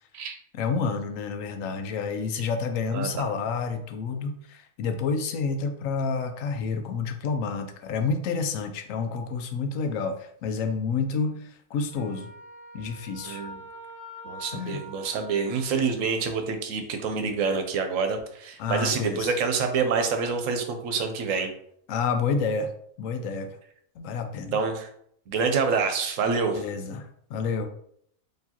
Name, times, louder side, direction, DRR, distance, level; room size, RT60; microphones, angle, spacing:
voice 1, 0.5-12.3 12.7-13.4 14.5-14.8 18.6-19.3 21.9-22.7 23.0-23.6 24.0-24.6 26.5-27.7, left 5 dB, 75° left, 7 dB, 0.9 m, -29 dB
voice 2, 2.9-3.3 13.2-13.6 14.2-21.5 24.5-24.9 25.3-26.6, right 5 dB, 75° right, 6 dB, 1.0 m, -27 dB
Wind instrument woodwind instrument, 11.9-16.0, right 1 dB, 25° left, 1.5 m, -44 dB
4.4 x 3.0 x 2.8 m, 0.67 s
omnidirectional pair, 1.4 m